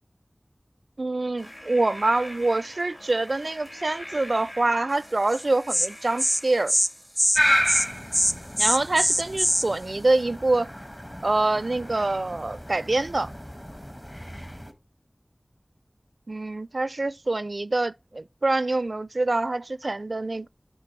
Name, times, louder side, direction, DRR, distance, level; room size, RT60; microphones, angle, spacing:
voice 1, 1.0-6.7 8.6-10.7 11.2-13.3 16.3-20.5, right 2 dB, 75° right, 0.4 m, -25 dB
sound 1, 1.4-7.1, equal, 45° left, 2.8 m, -43 dB
Insect, 5.3-5.4 5.7-5.9 6.2-6.4 6.7-6.9 7.2-7.4 7.7-7.9 8.1-9.6, equal, 5° left, 0.5 m, -22 dB
sound 2, 7.3-14.7, equal, 20° left, 1.2 m, -31 dB
10.5 x 4.0 x 3.2 m
wide cardioid pair, 45°, 0 cm